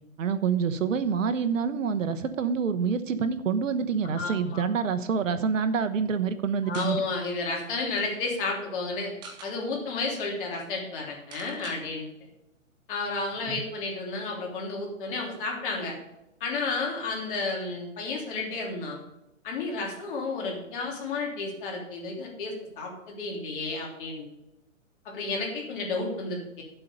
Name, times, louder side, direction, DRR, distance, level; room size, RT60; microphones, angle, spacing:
voice 1, 0.2-7.0 13.5-13.6, right 6 dB, 70° right, 11 dB, 1.2 m, -27 dB
voice 2, 4.1-4.6 6.6-9.1 9.4-12.1 12.9-15.9 16.4-19.0 19.4-24.3 25.0-26.6, left 3 dB, 40° left, -1 dB, 3.4 m, -32 dB
sound 1, 6.7-7.0 7.5-7.6 7.8-8.1 9.0-9.5 10.1-10.2 10.4-10.6 11.3-11.8, right 4 dB, 10° right, 0.7 m, -45 dB
9.8 x 7.7 x 5.2 m, 0.89 s
hypercardioid pair, 150°, 40 cm